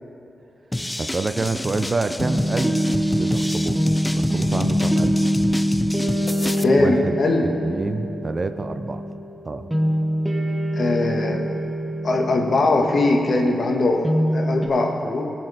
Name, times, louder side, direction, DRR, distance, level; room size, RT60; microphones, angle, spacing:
sound 1, 0.7-6.6, left 1 dB, 15° left, 0.4 m, -29 dB
voice 1, 1.0-2.8 3.1-3.8 4.1-5.2 6.8-9.0 9.4-9.7, right 3 dB, 40° right, 10 dB, 0.5 m, -27 dB
sound 2, 2.2-14.7, equal, 10° right, 1.5 m, -24 dB
voice 2, 6.6-7.4 10.7-11.4 12.0-14.0 14.3-15.3, left 2 dB, 60° left, 2 dB, 1.5 m, -20 dB
18.5 x 6.2 x 4.9 m, 2.8 s
cardioid pair, 60°, 0 cm